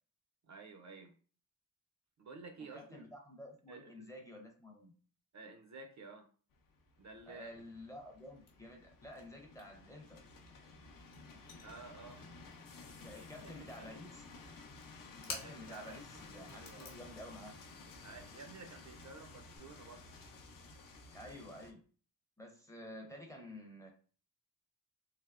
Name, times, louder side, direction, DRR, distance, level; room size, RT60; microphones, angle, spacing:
voice 1, 0.5-1.1 2.2-3.1 3.7-4.1 5.3-6.3 7.0-7.6 11.6-12.2 13.1-14.0 15.4-16.0 16.3-16.9 18.0-20.0, right 3 dB, 50° right, 5 dB, 0.4 m, -52 dB
voice 2, 2.6-4.9 7.3-10.2 13.0-14.2 15.2-17.6 21.1-21.8 22.4-23.9, left 1 dB, 10° left, 1 dB, 0.5 m, -51 dB
sound 1, 6.5-21.7, left 3 dB, 60° left, 0.5 m, -54 dB
sound 2, 8.2-9.2 9.5-13.0 13.3-13.8 14.7-16.0 16.3-19.6, left 3 dB, 45° left, 0.9 m, -52 dB
3.3 x 2.8 x 2.4 m, 0.40 s
wide cardioid pair, 160°, 37 cm